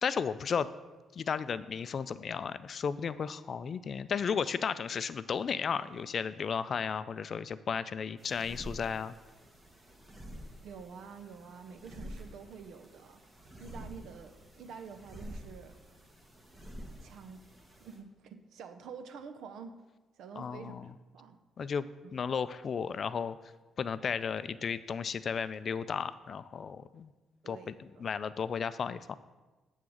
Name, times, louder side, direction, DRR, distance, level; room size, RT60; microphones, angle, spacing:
voice 1, 0.0-0.7 1.1-9.1 20.4-20.9 21.6-21.9 22.1-23.4 23.8-27.1 27.5-29.2, left 6 dB, 50° left, 14 dB, 0.3 m, -34 dB
sound 1, 8.2-18.0, equal, 20° right, 1.3 m, -49 dB
voice 2, 10.6-15.8 17.0-17.4 17.8-19.8 20.2-21.4 22.0-22.1 27.4-28.0, right 6 dB, 75° right, 9 dB, 0.6 m, -48 dB
8.5 x 3.6 x 6.3 m, 1.2 s
cardioid pair, 90°, 0 cm